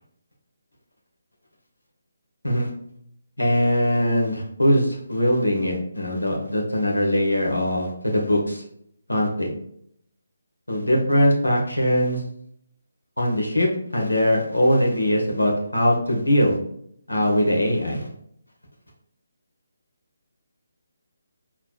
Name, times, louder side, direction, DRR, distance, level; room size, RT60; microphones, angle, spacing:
voice 1, 3.4-8.6 9.1-9.5 10.7-12.2 13.2-16.6 17.1-18.1, equal, 85° left, -1 dB, 1.5 m, -21 dB
4.7 x 3.9 x 2.3 m, 0.70 s
figure-of-eight pair, 150°, 0 cm